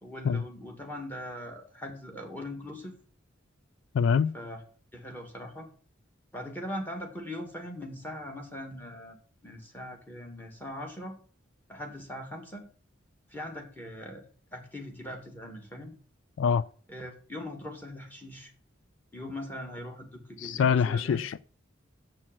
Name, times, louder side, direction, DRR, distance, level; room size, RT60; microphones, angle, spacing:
voice 1, 0.0-3.0 4.3-4.6 4.9-5.7 6.3-9.2 9.4-11.2 11.7-12.7 13.3-16.0 16.9-18.5 19.1-21.2, left 1 dB, 10° left, 2.0 m, -41 dB
voice 2, 3.9-4.3 16.4-16.6 20.4-21.4, left 6 dB, 70° left, 0.3 m, -24 dB
7.5 x 6.3 x 7.4 m
head